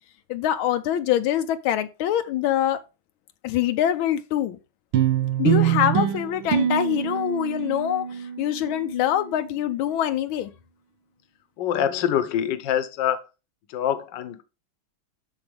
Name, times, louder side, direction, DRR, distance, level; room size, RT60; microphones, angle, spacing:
voice 1, 0.3-2.8 3.4-4.6 5.4-10.5, left 11 dB, 85° left, 1.4 m, -24 dB
sound 1, 4.9-9.6, right 10 dB, 85° right, 1.8 m, -25 dB
voice 2, 11.6-13.2 13.7-14.4, left 10 dB, 70° left, 1.5 m, -25 dB
13.0 x 4.4 x 3.3 m
omnidirectional pair, 2.2 m